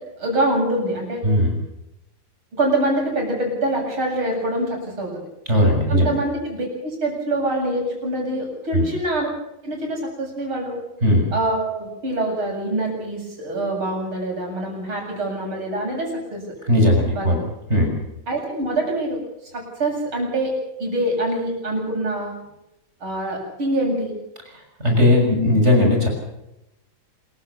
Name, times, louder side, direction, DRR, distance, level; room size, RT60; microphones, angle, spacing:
voice 1, 0.2-1.2 2.6-5.2 5.9-9.3 9.6-10.8 11.3-16.4 17.2-17.3 18.3-19.2 19.5-20.5 20.8-22.3 23.0-24.2, right 1 dB, 70° right, 1 dB, 8.6 m, -25 dB
voice 2, 5.5-6.1 8.7-8.9 11.0-11.3 16.7-17.4 17.7-17.9 24.5-26.1, left 1 dB, 30° right, 2 dB, 6.6 m, -17 dB
27.0 x 15.5 x 7.1 m, 0.89 s
omnidirectional pair, 2.4 m